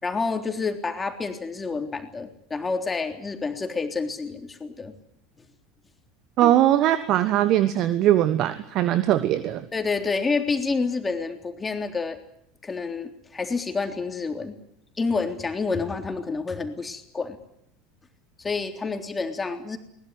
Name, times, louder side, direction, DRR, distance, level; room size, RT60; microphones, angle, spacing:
voice 1, 0.0-4.9 6.4-6.5 9.7-12.2 12.6-14.6 15.0-17.4 18.4-19.8, left 4 dB, 20° left, 5 dB, 3.5 m, -28 dB
voice 2, 6.4-9.7, right 12 dB, 45° right, 13 dB, 1.3 m, -21 dB
22.0 x 20.5 x 9.7 m, 0.75 s
figure-of-eight pair, 75°, 0 cm